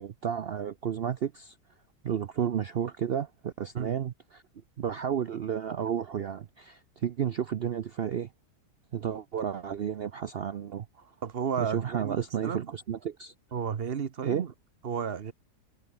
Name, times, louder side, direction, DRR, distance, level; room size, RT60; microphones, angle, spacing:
voice 1, 0.0-1.5 2.0-4.4 4.8-8.3 8.9-11.1 11.6-13.3 14.2-14.4, right 8 dB, 75° right, 0.5 m, -32 dB
voice 2, 11.2-12.2 12.4-12.7 13.5-14.5 14.8-15.3, right 7 dB, 45° right, 1.0 m, -32 dB
omnidirectional pair, 1.8 m